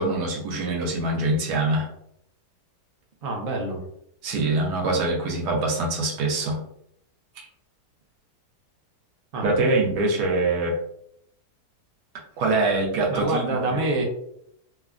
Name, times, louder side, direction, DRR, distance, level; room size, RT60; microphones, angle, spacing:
voice 1, 0.0-1.9 4.2-6.6 7.4-7.5 9.4-10.8 12.4-13.8, right 2 dB, 75° right, -1 dB, 1.3 m, -24 dB
voice 2, 3.2-3.8 9.3-9.5 13.1-14.0, right 2 dB, 60° right, 0 dB, 0.6 m, -26 dB
3.4 x 2.1 x 2.4 m, 0.73 s
omnidirectional pair, 1.7 m